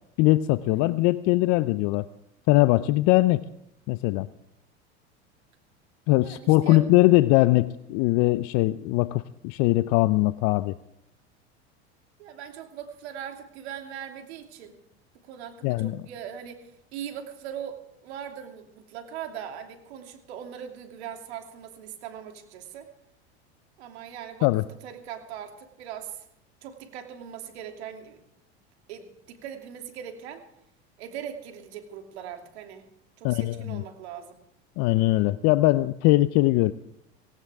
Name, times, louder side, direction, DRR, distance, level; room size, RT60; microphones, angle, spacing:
voice 1, 0.2-2.1 2.5-3.4 3.9-4.3 6.1-10.7 15.6-16.0 24.4-24.6 33.2-33.8 34.8-36.7, left 18 dB, 55° left, 16 dB, 0.6 m, -21 dB
voice 2, 6.2-6.8 12.2-14.8 15.2-17.8 18.0-22.9 23.8-24.5 24.8-26.3 26.6-28.2 28.9-30.4 31.0-32.9 33.2-34.4, right 9 dB, 75° right, 5 dB, 2.9 m, -40 dB
19.0 x 18.0 x 3.6 m, 0.81 s
hypercardioid pair, 90°, 33 cm